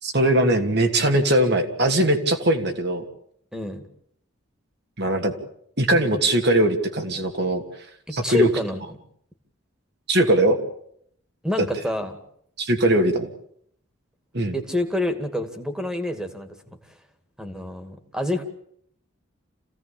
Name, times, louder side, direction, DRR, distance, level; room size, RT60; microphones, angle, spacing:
voice 1, 0.0-3.0 5.0-5.3 5.8-7.6 8.1-8.5 10.1-10.6 12.6-13.3 14.3-14.5, right 1 dB, 55° right, 5 dB, 2.7 m, -20 dB
voice 2, 3.5-3.8 8.1-8.8 11.4-12.1 14.5-16.5 17.4-18.4, left 1 dB, 5° right, 7 dB, 2.2 m, -27 dB
27.0 x 16.5 x 8.7 m, 0.69 s
head